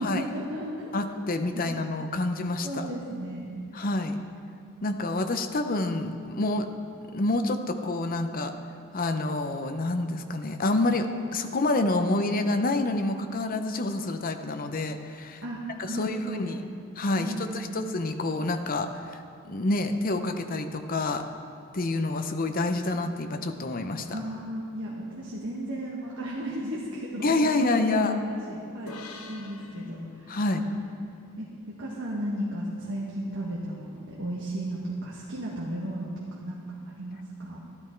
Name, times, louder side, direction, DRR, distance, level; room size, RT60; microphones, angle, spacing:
voice 1, 0.0-0.9 1.5-1.7 2.6-3.6 15.4-16.6 17.1-17.8 24.1-30.8 31.4-31.5 31.8-36.6 36.9-37.6, right 1 dB, 60° right, -5 dB, 1.6 m, -34 dB
voice 2, 0.9-2.9 3.7-4.2 4.8-6.7 7.1-8.5 8.9-15.4 15.8-16.7 17.0-19.2 19.4-21.2 21.7-24.1 27.2-28.1 30.3-30.6, left 2 dB, 40° left, 6 dB, 0.7 m, -28 dB
sound 1, 28.9-32.3, left 3 dB, 80° left, 1.0 m, -48 dB
13.0 x 12.0 x 4.5 m, 2.5 s
head